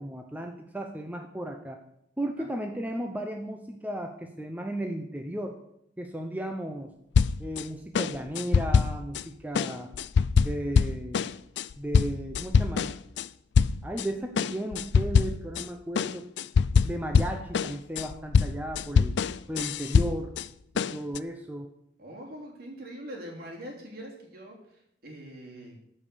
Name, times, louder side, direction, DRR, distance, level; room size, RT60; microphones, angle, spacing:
voice 1, 0.0-1.8 2.2-5.6 6.0-6.9 7.4-9.9 10.4-11.3 11.8-12.9 13.8-16.2 16.8-19.2 19.5-20.3 20.7-21.7, right 1 dB, 10° right, 3 dB, 0.7 m, -35 dB
sound 1, 7.1-7.6 7.9-9.2 9.5-13.3 13.5-14.1 14.4-15.7 16.0-20.5 20.8-21.2, left 5 dB, 70° left, 0.4 m, -24 dB
voice 2, 22.0-24.6 25.0-25.8, equal, 55° right, -1 dB, 3.1 m, -42 dB
13.5 x 5.5 x 6.8 m, 0.77 s
head